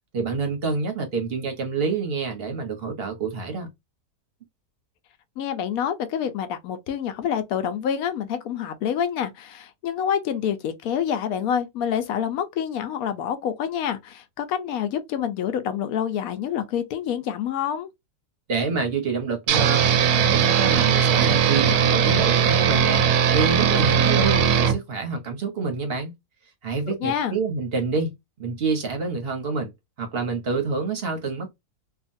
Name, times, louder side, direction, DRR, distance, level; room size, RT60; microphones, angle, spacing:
voice 1, 0.1-3.7 18.5-26.1 26.6-29.7 30.0-31.5, right 4 dB, 50° right, 0.8 m, -27 dB
voice 2, 5.4-17.9 27.0-27.4, left 8 dB, 70° left, 1.0 m, -27 dB
sound 1, 19.5-24.8, right 7 dB, 75° right, 1.1 m, -19 dB
2.8 x 2.4 x 2.5 m
omnidirectional pair, 1.7 m